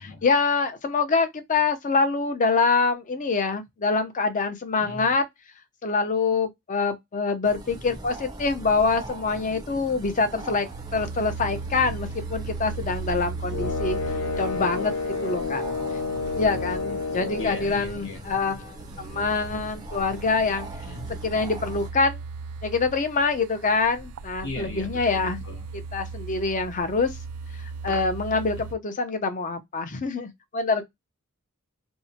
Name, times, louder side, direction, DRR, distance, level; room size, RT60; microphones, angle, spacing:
voice 1, 0.2-5.3 5.8-10.7 10.9-14.0 14.4-14.9 15.2-15.6 16.3-20.7 21.2-22.2 22.6-25.4 25.9-27.1 27.8-30.8, left 4 dB, 35° left, 0.6 m, -25 dB
voice 2, 4.8-5.1 16.4-16.5 17.0-18.3 20.8-21.1 24.4-25.6, left 3 dB, 65° left, 0.9 m, -38 dB
sound 1, 7.4-21.9, right 1 dB, 20° right, 0.5 m, -40 dB
sound 2, 10.7-28.8, right 4 dB, 80° right, 0.4 m, -38 dB
sound 3, 13.5-17.8, left 4 dB, 90° left, 0.6 m, -29 dB
2.7 x 2.0 x 2.7 m
head